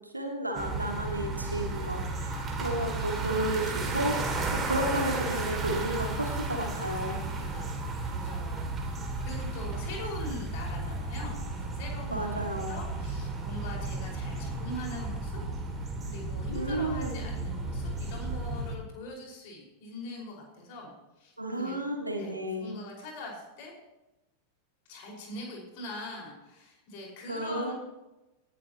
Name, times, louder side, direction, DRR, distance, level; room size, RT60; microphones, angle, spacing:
voice 1, 0.1-4.2 4.5-7.1 12.1-12.8 16.5-17.2 21.4-22.7 27.3-27.7, right 1 dB, 85° right, 2 dB, 2.4 m, -32 dB
sound 1, 0.5-18.8, right 2 dB, 20° right, 2.7 m, -34 dB
voice 2, 7.3-7.8 8.0-15.4 15.7-20.9 21.2-23.7 24.9-27.7, left 1 dB, 45° left, -1 dB, 5.5 m, -43 dB
19.0 x 12.0 x 3.1 m, 0.98 s
figure-of-eight pair, 90°, 0 cm